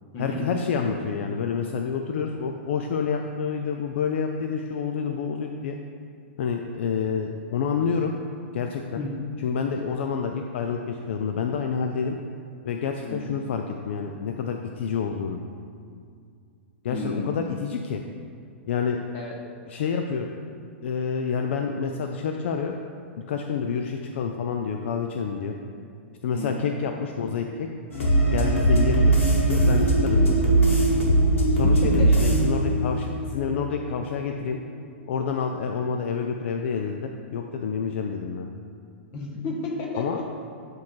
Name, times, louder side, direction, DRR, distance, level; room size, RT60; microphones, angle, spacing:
voice 1, 0.2-5.8 6.4-8.1 8.5-9.0 9.4-12.2 12.6-15.4 16.8-18.0 18.7-19.0 19.7-20.3 20.8-22.8 23.3-25.5 26.2-27.7 28.3-30.6 31.5-34.6 35.1-38.5 40.0-40.2, left 6 dB, 70° left, 3 dB, 0.4 m, -28 dB
voice 2, 16.9-17.3 19.1-19.3 26.3-26.5 30.2-30.4 31.6-32.3 39.1-40.3, left 2 dB, 40° left, -1 dB, 1.4 m, -32 dB
sound 1, 27.9-34.0 34.3-34.4, right 2 dB, 85° left, 1.5 m, -20 dB
9.4 x 3.2 x 4.5 m, 2.3 s
hypercardioid pair, 130°, 7 cm